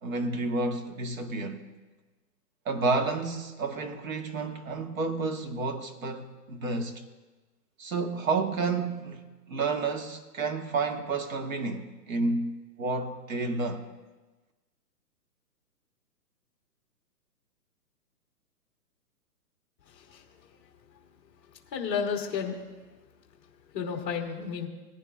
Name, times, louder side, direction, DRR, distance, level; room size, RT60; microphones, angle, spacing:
voice 1, 0.0-1.6 2.6-7.0 7.8-13.8, right 3 dB, 55° right, 1.4 m, -30 dB
voice 2, 19.9-20.2 21.7-22.5 23.7-24.7, left 6 dB, 20° left, 1.1 m, -32 dB
18.5 x 11.0 x 2.4 m
hypercardioid pair, 160°, 48 cm